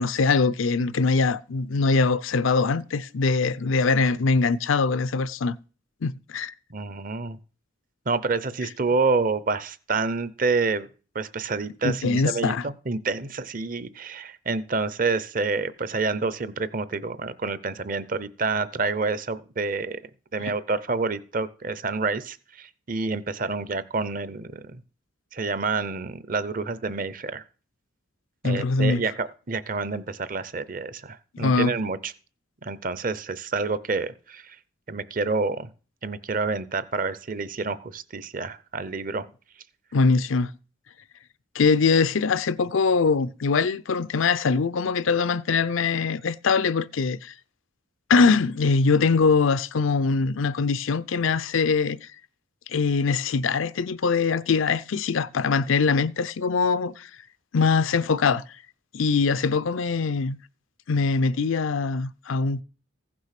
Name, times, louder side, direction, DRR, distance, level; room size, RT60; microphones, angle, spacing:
voice 1, 0.0-5.6 6.0-6.5 11.8-12.6 28.4-29.0 31.3-31.7 39.9-40.5 41.5-47.3 48.1-52.1 52.7-57.1 57.5-58.4 58.9-60.4 60.9-62.6, left 4 dB, 85° left, 0.5 m, -22 dB
voice 2, 6.7-7.4 8.1-10.9 11.1-20.0 20.3-24.8 25.3-27.4 28.4-32.1 32.6-34.6 34.9-35.7 36.0-39.3, right 4 dB, 45° right, 0.7 m, -28 dB
15.5 x 6.2 x 5.8 m
head